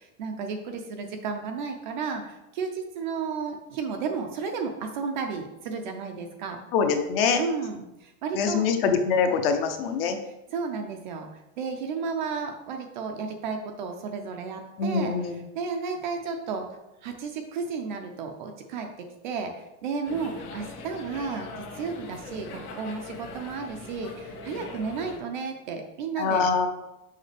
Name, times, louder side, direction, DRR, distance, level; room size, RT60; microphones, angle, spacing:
voice 1, 0.0-6.6 7.4-8.6 10.2-18.9 19.2-26.5, right 5 dB, 35° right, 4 dB, 0.4 m, -33 dB
voice 2, 6.7-7.4 8.3-10.2 14.8-15.4 26.2-26.7, left 5 dB, 40° left, 6 dB, 0.6 m, -24 dB
sound 1, 20.0-25.2, left 3 dB, 85° left, 1.7 m, -41 dB
6.5 x 5.6 x 3.3 m, 0.94 s
supercardioid pair, 170°, 43 cm